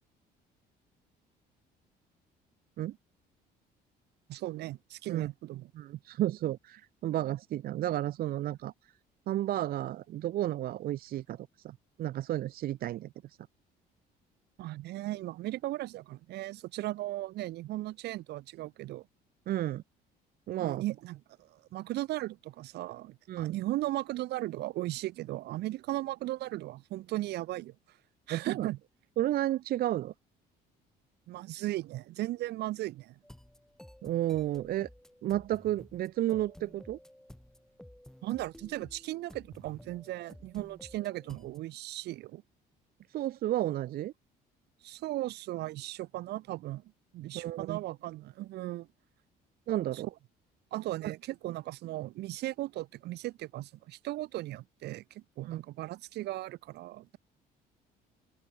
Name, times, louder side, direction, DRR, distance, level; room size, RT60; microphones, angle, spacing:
voice 1, 4.3-5.7 14.6-19.1 20.6-27.7 28.3-28.8 31.3-33.2 38.2-42.4 44.8-46.8 47.1-48.9 49.9-50.0 50.7-57.2, right 16 dB, 80° right, 3.2 m, -37 dB
voice 2, 5.7-8.9 9.3-13.4 19.5-19.8 20.5-20.8 23.3-23.6 28.3-28.7 29.2-30.1 34.0-34.9 35.2-37.0 43.1-44.1 47.3-47.8 49.7-50.1 51.0-51.1 55.4-55.6, right 13 dB, 60° right, 0.8 m, -32 dB
sound 1, 33.2-41.6, left 1 dB, 5° left, 3.3 m, -53 dB
open air
cardioid pair, 110°, 17 cm